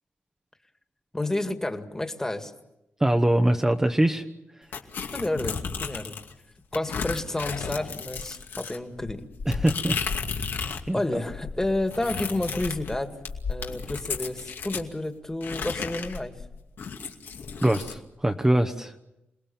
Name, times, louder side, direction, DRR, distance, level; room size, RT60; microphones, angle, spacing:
voice 1, 1.1-2.5 5.1-6.2 6.7-9.3 10.9-13.1 13.5-16.3, left 1 dB, 15° left, 7 dB, 2.1 m, -30 dB
voice 2, 3.0-4.2 9.5-10.0 10.9-11.0 17.6-19.0, right 1 dB, 15° right, 5 dB, 1.1 m, -23 dB
sound 1, 4.7-6.3 6.7-10.9 11.2-14.9 15.4-18.0, left 5 dB, 75° left, 2.4 m, -34 dB
28.0 x 20.0 x 7.2 m, 0.89 s
wide cardioid pair, 105°, 4 cm